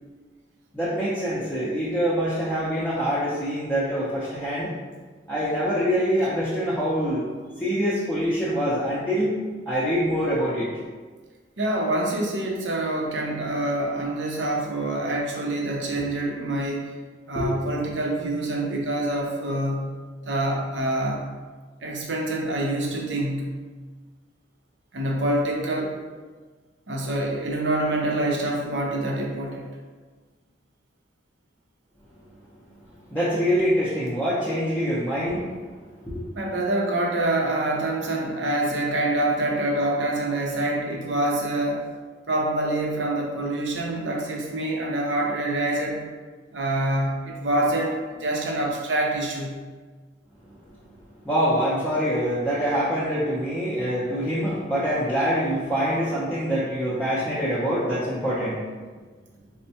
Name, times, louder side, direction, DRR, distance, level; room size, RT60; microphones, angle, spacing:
voice 1, 0.7-4.7 5.3-7.2 7.6-9.4 9.7-10.7 17.4-17.5 33.1-35.5 36.1-36.2 51.2-58.6, equal, 10° left, -11 dB, 0.6 m, -25 dB
voice 2, 11.6-16.9 17.3-19.9 20.2-21.3 21.8-23.6 24.9-26.0 26.9-29.7 36.4-41.8 42.3-46.0 46.5-49.6, right 1 dB, 80° right, -1 dB, 0.6 m, -26 dB
4.3 x 2.1 x 2.7 m, 1.4 s
head